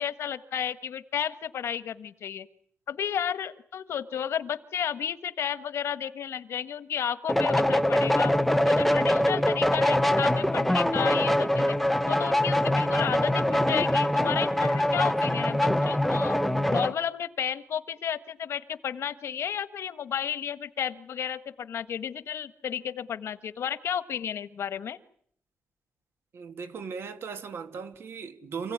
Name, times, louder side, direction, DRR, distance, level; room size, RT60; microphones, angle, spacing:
voice 1, 0.0-2.5 2.9-8.3 8.6-11.8 12.1-16.4 16.7-25.0, left 8 dB, 85° left, 1.5 m, -32 dB
sound 1, 7.3-16.9, left 1 dB, 5° left, 1.0 m, -24 dB
voice 2, 26.3-28.7, right 5 dB, 70° right, 2.6 m, -37 dB
28.5 x 17.0 x 9.7 m
wide cardioid pair, 170°, 4 cm